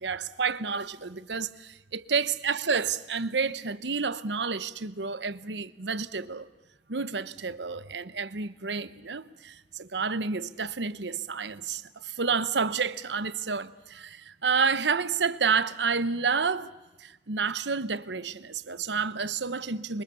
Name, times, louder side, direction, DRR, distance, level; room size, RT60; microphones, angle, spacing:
voice 1, 0.0-6.5 6.9-16.7 17.0-20.0, right 5 dB, 90° right, 1.0 m, -30 dB
27.5 x 23.5 x 7.1 m
head